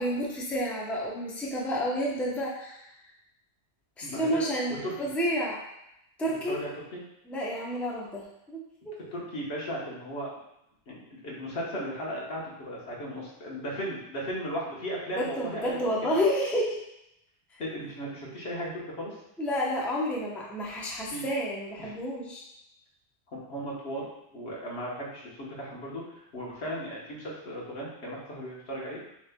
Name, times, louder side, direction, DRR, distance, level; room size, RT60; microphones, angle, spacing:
voice 1, 0.0-2.8 4.0-5.6 6.2-6.6 7.3-8.3 8.5-8.9 15.2-16.8 19.4-22.4, equal, ahead, -4 dB, 0.6 m, -30 dB
voice 2, 4.0-5.1 6.5-7.0 9.1-10.3 10.9-15.8 17.6-19.2 21.1-21.3 21.8-21.9 23.3-29.0, equal, 75° left, -4 dB, 1.4 m, -36 dB
7.2 x 3.2 x 2.2 m, 0.82 s
omnidirectional pair, 1.1 m